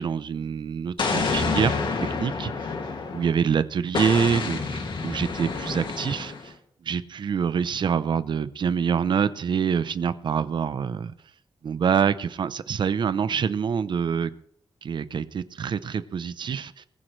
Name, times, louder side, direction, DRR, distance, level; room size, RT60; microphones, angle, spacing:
voice 1, 0.0-1.8 2.2-2.7 3.1-6.5 6.8-11.1 11.6-14.3 14.8-16.9, right 7 dB, 60° right, 0.8 m, -26 dB
Explosion, 1.0-3.4 3.9-6.5, left 4 dB, 65° left, 2.4 m, -28 dB
20.0 x 15.0 x 3.3 m
wide cardioid pair, 175°, 9 cm